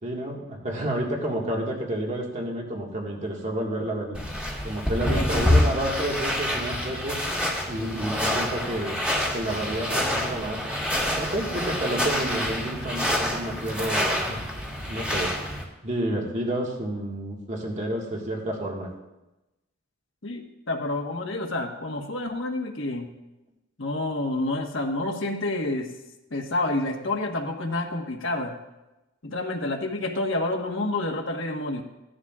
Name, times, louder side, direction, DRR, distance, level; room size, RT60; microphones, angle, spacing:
voice 1, 0.0-4.2 4.6-7.2 7.6-9.0 9.3-10.6 11.2-14.4 14.8-15.3 15.8-18.9, right 1 dB, 35° right, -1 dB, 1.7 m, -30 dB
sound 1, 4.1-15.6, left 1 dB, 5° right, 1.7 m, -27 dB
voice 2, 5.1-5.5 20.2-23.1 23.8-25.9 26.3-28.5 29.2-31.8, left 2 dB, 70° left, 3 dB, 1.4 m, -29 dB
16.0 x 11.5 x 2.4 m, 1.0 s
head